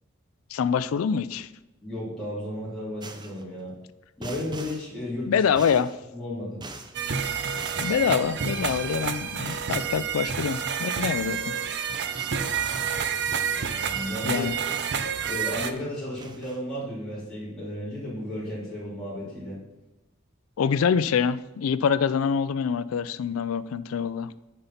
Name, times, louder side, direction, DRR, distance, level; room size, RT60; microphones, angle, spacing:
voice 1, 0.5-1.5 5.3-5.9 7.8-11.5 14.2-14.5 20.6-24.3, left 7 dB, 80° left, 15 dB, 0.4 m, -25 dB
voice 2, 1.8-3.7 4.2-5.4 6.1-6.6 13.7-14.5 15.3-19.6, left 1 dB, ahead, -11 dB, 2.8 m, -34 dB
sound 1, 3.0-3.4 4.2-4.9 5.6-6.0 6.6-7.0 7.6-8.1 8.6-8.9 9.4-9.8 11.2-11.3 11.5-15.0 15.2-15.9 16.2-16.6, right 2 dB, 20° right, 0.7 m, -42 dB
sound 2, 6.9-15.7, right 7 dB, 55° right, 0.6 m, -29 dB
8.9 x 5.6 x 5.7 m, 1.0 s
head